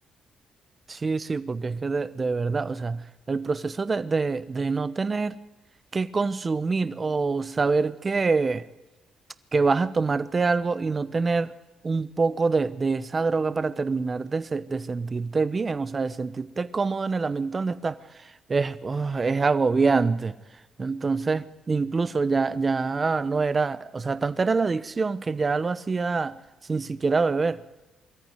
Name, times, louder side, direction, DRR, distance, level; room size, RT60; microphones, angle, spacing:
voice 1, 0.9-5.4 5.9-8.6 9.5-11.5 11.8-20.3 20.8-26.3 26.7-27.6, right 4 dB, 30° right, 14 dB, 0.9 m, -25 dB
23.0 x 14.0 x 9.2 m, 1.1 s
cardioid pair, 90°, 0 cm